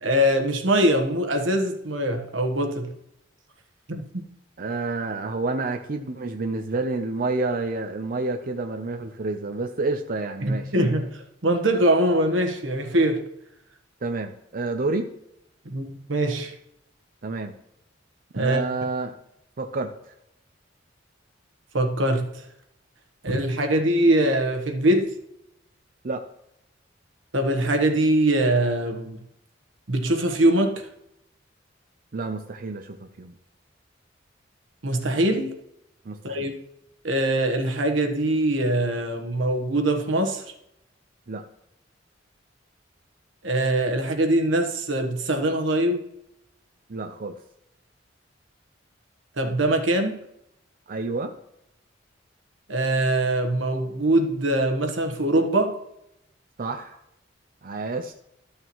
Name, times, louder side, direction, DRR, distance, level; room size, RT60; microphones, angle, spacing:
voice 1, 0.0-2.9 3.9-4.3 10.4-13.2 15.6-16.5 18.3-18.6 21.7-22.4 23.2-25.1 27.3-29.2 29.9-30.9 34.8-35.5 36.2-36.5 37.0-40.4 43.4-46.0 49.4-50.2 52.7-55.8, right 1 dB, 85° right, 1.2 m, -23 dB
voice 2, 4.6-10.7 14.0-15.1 17.2-17.5 18.3-19.2 19.6-20.1 26.0-26.2 32.1-33.4 36.1-36.5 41.3-41.4 46.9-47.4 50.9-51.3 56.6-57.0 57.6-58.1, right 3 dB, 50° right, 0.6 m, -29 dB
13.0 x 6.5 x 3.0 m
head